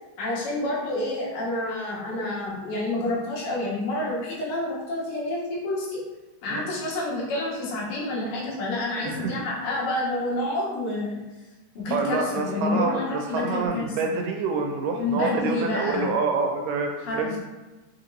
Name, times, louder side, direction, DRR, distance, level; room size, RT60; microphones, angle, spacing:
voice 1, 0.2-6.0 6.4-11.2 11.8-14.2 15.0-16.1 17.0-17.4, left 2 dB, 85° left, -5 dB, 2.6 m, -28 dB
voice 2, 9.0-9.3 11.9-17.3, right 4 dB, 85° right, 3 dB, 2.2 m, -27 dB
5.7 x 2.9 x 2.6 m, 1.1 s
omnidirectional pair, 3.8 m